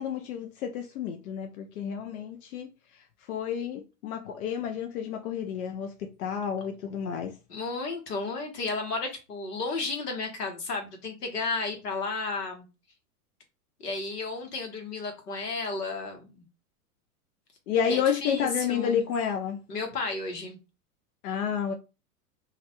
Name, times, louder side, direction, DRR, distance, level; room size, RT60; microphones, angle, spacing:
voice 1, 0.0-2.7 3.3-7.3 17.7-19.6 21.2-21.7, left 7 dB, 65° left, 0.6 m, -30 dB
voice 2, 7.5-12.7 13.8-16.4 17.9-19.0 19.7-20.6, left 3 dB, 85° left, 1.0 m, -33 dB
2.5 x 2.1 x 2.7 m
hypercardioid pair, 105°, 46 cm